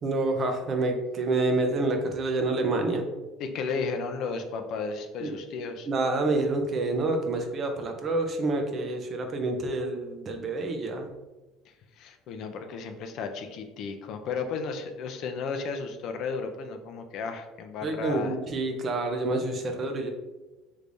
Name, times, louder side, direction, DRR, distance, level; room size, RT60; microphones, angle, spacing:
voice 1, 0.0-3.0 5.2-5.3 5.9-11.1 17.8-20.1, right 2 dB, 35° right, 4 dB, 0.5 m, -28 dB
voice 2, 3.4-5.9 11.7-18.4, left 5 dB, 55° left, 6 dB, 0.4 m, -34 dB
3.4 x 3.2 x 2.6 m, 1.1 s
cardioid pair, 135°, 0 cm